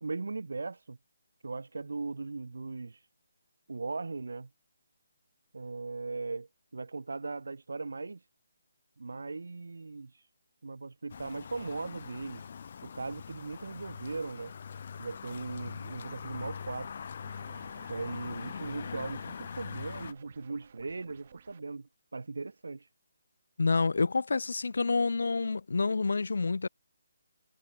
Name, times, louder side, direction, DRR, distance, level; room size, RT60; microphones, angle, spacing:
voice 1, 0.0-1.0 1.4-3.1 3.7-4.5 5.5-8.3 9.0-10.3 10.6-12.5 12.8-14.5 15.0-16.9 17.9-22.9, right 3 dB, 85° right, 0.9 m, -38 dB
sound 1, 11.1-20.1, left 7 dB, 45° left, 0.6 m, -42 dB
sound 2, 17.2-21.6, right 7 dB, 40° right, 3.2 m, -55 dB
voice 2, 23.6-26.7, left 4 dB, 75° left, 0.9 m, -28 dB
hypercardioid pair, 170°, 0 cm